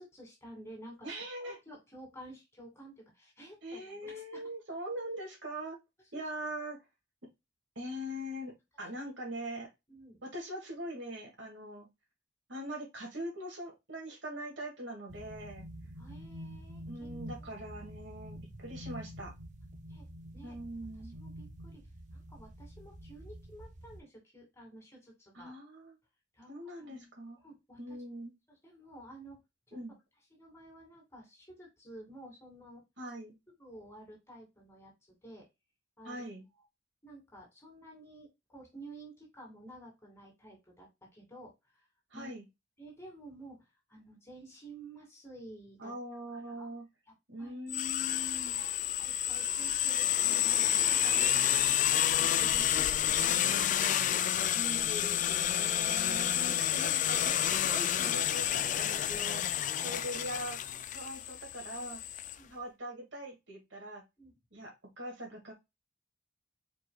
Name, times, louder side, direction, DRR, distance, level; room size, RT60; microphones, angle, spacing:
voice 1, 0.0-4.4 6.1-6.2 9.9-10.2 16.0-17.2 19.9-20.0 20.3-20.5 21.1-21.8 22.1-25.5 26.3-26.5 26.8-27.1 27.4-28.0 28.6-29.4 29.7-29.8 30.3-32.8 33.6-34.9 35.2-35.5 36.0-36.2 37.0-41.8 42.1-42.3 42.8-45.9 46.3-46.7 47.4-47.6 48.6-51.5 51.8-54.6 59.6-60.1 62.4-62.5 64.2-64.3, right 1 dB, 15° left, -1 dB, 2.3 m, -52 dB
voice 2, 1.0-1.6 3.6-5.8 6.1-6.8 7.8-9.7 10.2-11.9 12.5-15.7 16.9-19.3 20.4-21.1 25.3-26.0 26.5-27.4 27.8-28.4 29.7-29.9 33.0-33.4 36.0-36.5 42.1-42.5 45.8-46.9 47.3-48.6 51.3-51.8 54.5-60.6 60.9-62.0 62.5-64.0 64.5-65.5, equal, 75° right, 1 dB, 2.1 m, -42 dB
sound 1, 15.1-24.0, equal, 40° right, 0.8 m, -47 dB
sound 2, 47.7-62.3, left 11 dB, 45° left, 0.3 m, -29 dB
4.8 x 4.6 x 2.3 m, 0.21 s
head